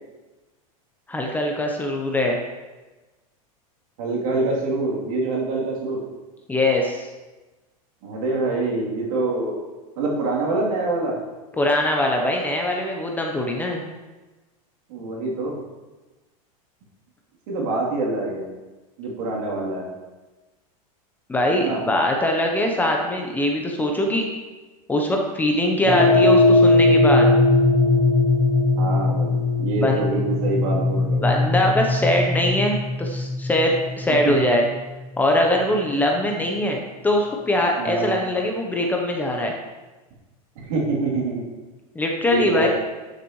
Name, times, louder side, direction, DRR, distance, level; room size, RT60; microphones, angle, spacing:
voice 1, 1.1-2.4 6.5-7.1 11.6-13.8 21.3-24.2 24.9-27.3 29.8-30.0 31.2-34.6 35.2-39.5 41.9-42.7, left 1 dB, 10° left, 1 dB, 0.7 m, -22 dB
voice 2, 4.0-6.0 8.0-9.6 10.0-11.2 14.9-15.6 17.5-18.5 19.0-19.9 21.6-21.8 28.8-31.2 34.2-34.3 37.8-38.1 40.6-41.4 42.2-42.7, right 2 dB, 70° right, -4 dB, 3.0 m, -25 dB
sound 1, 25.8-34.3, left 2 dB, 50° right, 2.0 m, -19 dB
12.0 x 6.6 x 3.1 m, 1.2 s
supercardioid pair, 150°, 18 cm